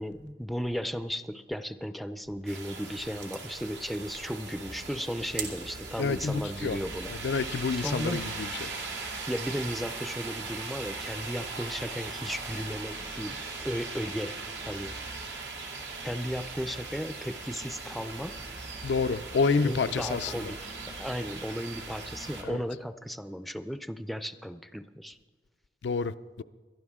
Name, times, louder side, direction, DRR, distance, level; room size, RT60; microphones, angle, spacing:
voice 1, 0.0-7.1 7.8-8.2 9.3-14.3 14.6-14.9 16.0-18.4 19.6-20.7 21.0-25.2, equal, ahead, 0.4 m, -35 dB
sound 1, 2.5-22.4, right 4 dB, 90° right, 2.5 m, -40 dB
sound 2, 4.6-22.4, equal, 60° right, 2.2 m, -49 dB
voice 2, 6.0-6.8 7.1-8.7 18.8-20.5 22.4-22.6 25.8-26.4, left 4 dB, 80° left, 0.4 m, -29 dB
22.5 x 12.0 x 3.6 m
head